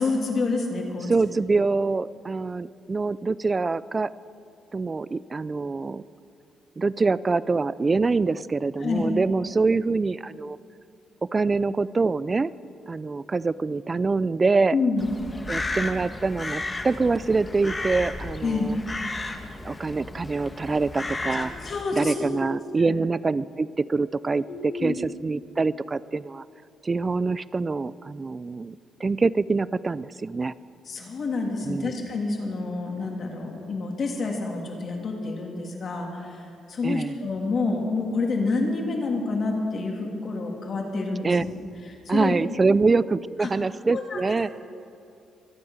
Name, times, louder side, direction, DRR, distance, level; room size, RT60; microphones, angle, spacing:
voice 1, 0.0-1.3 8.8-9.0 14.7-15.1 18.4-18.7 21.4-22.3 22.8-22.9 24.5-24.9 30.9-36.4 36.7-41.3 42.0-42.3 43.4-43.5 43.9-44.3, left 3 dB, 50° left, 1 dB, 3.1 m, -28 dB
voice 2, 1.1-4.1 4.7-6.0 6.8-10.6 11.2-12.5 12.9-14.7 15.5-18.8 19.6-21.5 21.9-26.4 26.8-30.5 31.6-31.9 36.8-37.1 41.2-41.4 42.1-44.5, right 3 dB, 30° right, 18 dB, 0.4 m, -25 dB
Crow, 15.0-21.8, left 2 dB, 20° left, 1.4 m, -33 dB
24.0 x 8.6 x 6.6 m, 2.6 s
cardioid pair, 90°, 0 cm